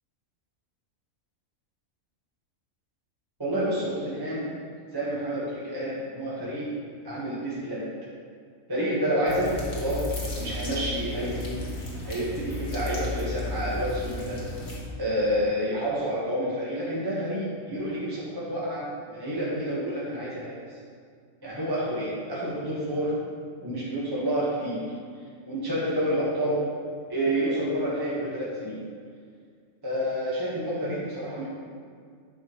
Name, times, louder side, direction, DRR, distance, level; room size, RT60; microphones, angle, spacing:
voice 1, 3.4-4.4 4.9-6.7 7.0-7.8 8.7-10.0 10.4-11.6 12.0-14.4 15.0-20.6 21.4-23.1 23.6-24.8 25.5-26.6 27.1-28.8 29.8-31.4, equal, 15° right, -8 dB, 1.3 m, -29 dB
sound 1, 9.3-14.8, left 2 dB, 75° left, 1.9 m, -34 dB
9.5 x 6.2 x 3.1 m, 2.1 s
omnidirectional pair, 1.4 m